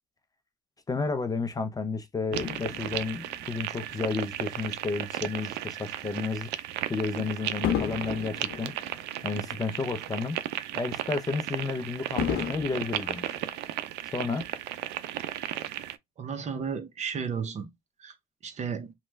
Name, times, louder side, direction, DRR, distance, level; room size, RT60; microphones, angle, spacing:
voice 1, 0.9-6.5 6.9-8.7 9.2-10.4 10.7-13.4 14.1-14.4, left 4 dB, 20° left, 0.5 m, -32 dB
Fireworks, 2.3-4.9 5.5-5.8 7.6-10.1 10.5-10.6 12.2-14.1 14.8-14.9, left 8 dB, 75° left, 0.7 m, -35 dB
sound 1, 2.3-15.9, right 13 dB, 85° right, 0.4 m, -35 dB
voice 2, 16.2-17.7 18.0-18.1 18.4-18.9, right 6 dB, 45° right, 0.7 m, -33 dB
3.0 x 2.2 x 3.1 m
cardioid pair, 110°, 17 cm